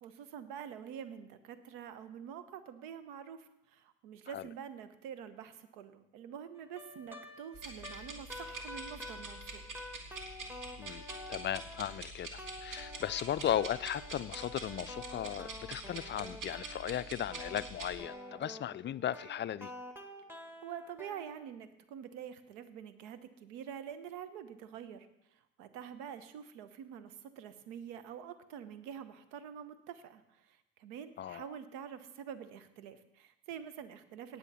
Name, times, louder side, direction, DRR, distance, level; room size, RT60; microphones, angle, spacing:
voice 1, 0.0-9.6 20.3-25.1 25.3-34.4, right 8 dB, 70° right, 13 dB, 1.1 m, -47 dB
sound 1, 6.5-12.1 12.4-21.4, left 1 dB, 5° right, 1.7 m, -49 dB
sound 2, 7.5-17.9, right 2 dB, 55° right, 2.4 m, -46 dB
voice 2, 11.3-19.7 31.2-31.4, left 10 dB, 30° left, 17 dB, 0.4 m, -36 dB
18.0 x 7.6 x 4.2 m, 0.87 s
hypercardioid pair, 55°, 38 cm